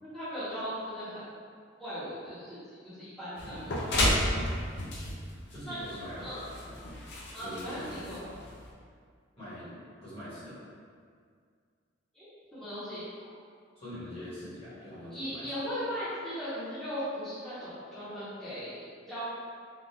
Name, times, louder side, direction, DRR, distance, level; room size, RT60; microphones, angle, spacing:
voice 1, 0.0-1.2 1.8-2.6 2.8-4.1 5.7-5.8 6.2-6.4 7.3-8.2 12.1-12.3 12.5-13.3 15.1-19.2, equal, 5° left, -16 dB, 0.9 m, -38 dB
sound 1, 3.4-8.7, left 1 dB, 60° left, 0.5 m, -32 dB
voice 2, 3.4-3.7 5.5-6.3 6.6-6.8 7.4-8.5 9.4-9.8 10.0-10.6 13.7-15.5, equal, 30° left, -11 dB, 1.2 m, -43 dB
3.4 x 2.4 x 2.8 m, 2.1 s
head